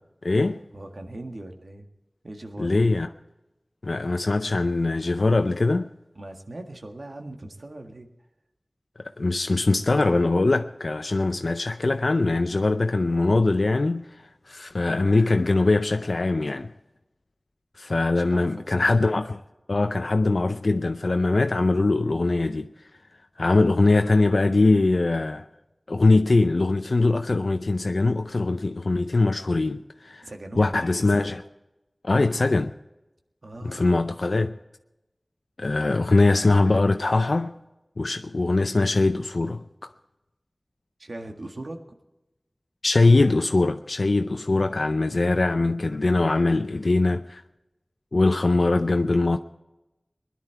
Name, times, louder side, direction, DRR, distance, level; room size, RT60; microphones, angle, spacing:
voice 1, 0.2-0.6 2.6-3.1 3.8-5.9 9.2-14.1 14.5-16.7 17.8-19.4 19.7-22.7 23.4-25.5 25.9-30.3 30.6-31.4 32.0-32.7 33.6-34.5 35.6-37.5 38.0-39.9 42.8-47.4 48.1-49.4, left 2 dB, 85° left, 0.5 m, -22 dB
voice 2, 0.7-1.9 2.2-2.9 6.2-8.1 18.2-19.0 30.2-30.8 33.4-34.1 41.0-41.8, right 2 dB, 80° right, 1.7 m, -40 dB
21.0 x 11.0 x 4.6 m
wide cardioid pair, 45°, 0 cm